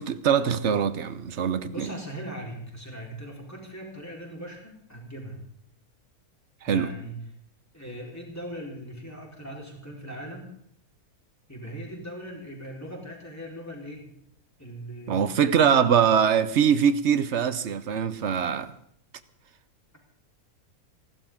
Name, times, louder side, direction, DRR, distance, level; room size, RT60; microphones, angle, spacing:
voice 1, 0.0-1.9 6.6-6.9 15.1-18.7, right 7 dB, 55° right, 1.1 m, -23 dB
voice 2, 1.7-5.4 6.7-7.2 7.7-10.5 11.5-14.1 14.6-16.1, right 1 dB, 10° left, 4.1 m, -40 dB
28.5 x 12.5 x 3.7 m
omnidirectional pair, 1.6 m